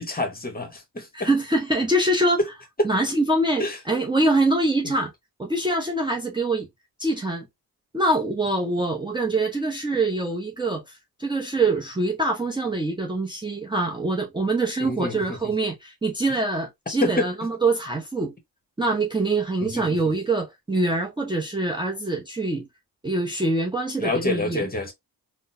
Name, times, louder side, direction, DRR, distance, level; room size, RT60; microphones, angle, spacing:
voice 1, 0.0-1.3 2.8-2.9 3.6-3.8 14.8-15.2 17.0-17.3 19.6-19.8 24.0-24.9, left 2 dB, 25° left, 1.1 m, -27 dB
voice 2, 1.1-2.4 2.8-5.1 5.4-6.7 7.0-7.5 7.9-18.3 18.8-22.7 23.0-24.7, right 2 dB, 10° right, 0.7 m, -24 dB
3.6 x 2.1 x 2.5 m
cardioid pair, 75°, 38 cm